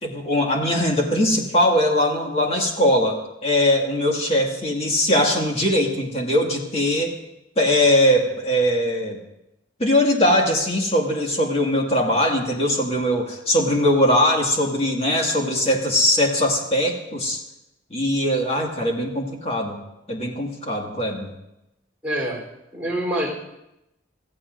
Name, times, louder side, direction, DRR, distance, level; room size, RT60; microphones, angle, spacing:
voice 1, 0.0-7.1 7.6-9.2 9.8-17.4 17.9-19.7 20.1-21.3, left 1 dB, 30° left, 0 dB, 2.0 m, -21 dB
voice 2, 22.0-22.4 22.7-23.3, right 1 dB, 5° right, -4 dB, 3.7 m, -25 dB
24.5 x 14.5 x 2.6 m, 0.89 s
head